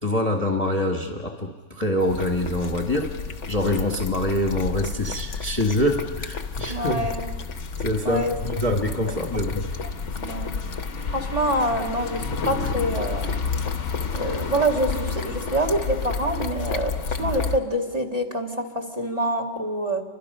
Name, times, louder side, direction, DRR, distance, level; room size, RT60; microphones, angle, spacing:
voice 1, 0.0-3.1 3.5-7.1 7.8-9.6, left 1 dB, 20° left, 2 dB, 1.4 m, -25 dB
sound 1, 2.0-17.6, left 5 dB, 50° left, 1.1 m, -30 dB
voice 2, 6.7-7.2 8.0-8.3 10.2-10.5 11.1-13.4 14.1-20.0, right 1 dB, 20° right, 2 dB, 2.0 m, -26 dB
29.0 x 24.5 x 5.5 m, 1.4 s
omnidirectional pair, 1.9 m